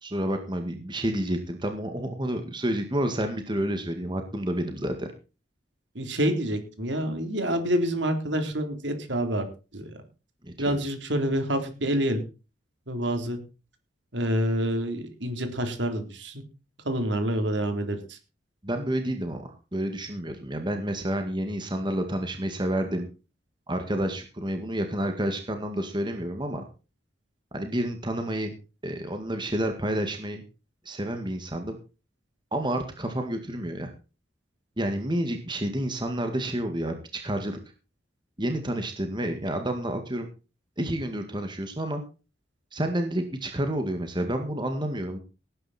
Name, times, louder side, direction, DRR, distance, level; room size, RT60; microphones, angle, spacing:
voice 1, 0.0-5.1 10.4-10.8 18.6-23.1 23.7-26.6 27.5-28.5 28.8-30.4 30.9-31.8 32.5-33.9 34.8-37.6 38.4-40.3 40.8-42.0 42.7-45.2, right 1 dB, 25° right, 5 dB, 2.0 m, -29 dB
voice 2, 6.0-9.5 9.7-9.9 10.6-12.2 12.9-13.4 14.1-16.4 16.8-18.2, equal, 70° right, 6 dB, 3.8 m, -27 dB
18.5 x 9.9 x 4.4 m, 0.33 s
head